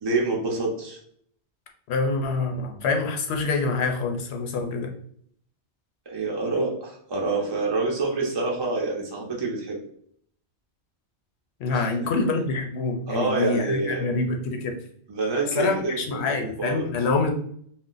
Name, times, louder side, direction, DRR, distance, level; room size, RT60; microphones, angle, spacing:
voice 1, 0.0-1.0 6.1-9.8 11.7-12.1 13.1-14.1 15.1-16.9, right 3 dB, 35° right, -1 dB, 0.4 m, -27 dB
voice 2, 1.9-4.9 11.6-14.8 15.5-17.3, left 3 dB, 70° left, 3 dB, 0.8 m, -26 dB
2.5 x 2.1 x 3.8 m, 0.64 s
omnidirectional pair, 1.2 m